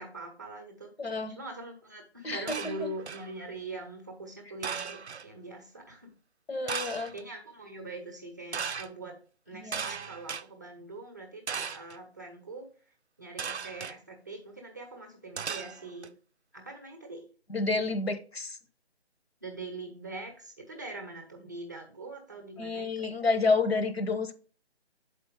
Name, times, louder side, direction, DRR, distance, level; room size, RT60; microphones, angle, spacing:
voice 1, 0.0-0.9 1.3-6.1 7.1-9.1 9.5-12.7 13.2-16.1 16.5-17.2 19.4-23.1, right 2 dB, 15° right, 0.7 m, -43 dB
voice 2, 1.0-1.4 2.2-2.9 6.5-7.1 9.5-9.8 17.5-18.6 22.6-24.3, left 3 dB, 65° left, 1.1 m, -29 dB
sound 1, 2.5-3.3 4.6-5.3 6.7-7.2 8.5-8.9 9.7-10.4 11.5-12.0 13.4-14.0 15.4-16.1, right 6 dB, 85° right, 0.5 m, -36 dB
7.0 x 4.5 x 4.9 m
figure-of-eight pair, 155°, 33 cm